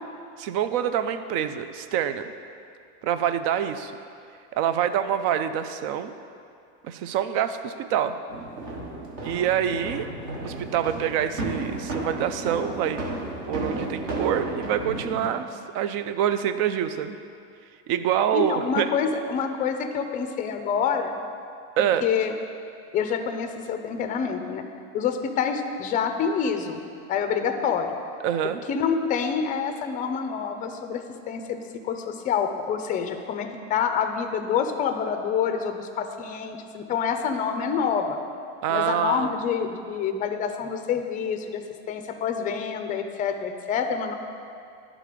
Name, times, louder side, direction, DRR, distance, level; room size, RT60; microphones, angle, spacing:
voice 1, 0.4-2.3 3.0-3.9 4.5-6.1 6.8-8.2 9.2-10.1 10.4-13.1 13.5-17.2 17.9-18.9 21.8-22.1 28.2-28.6 38.6-39.4, right 9 dB, 60° right, 10 dB, 0.5 m, -26 dB
sound 1, 8.3-15.3, right 2 dB, 40° right, 1.2 m, -33 dB
voice 2, 18.3-21.2 22.0-22.3 22.9-24.6 24.9-26.8 27.1-28.0 28.7-31.6 31.8-38.2 38.7-41.6 41.9-44.2, left 7 dB, 25° left, 7 dB, 0.4 m, -27 dB
11.0 x 3.8 x 5.0 m, 2.5 s
supercardioid pair, 150°, 33 cm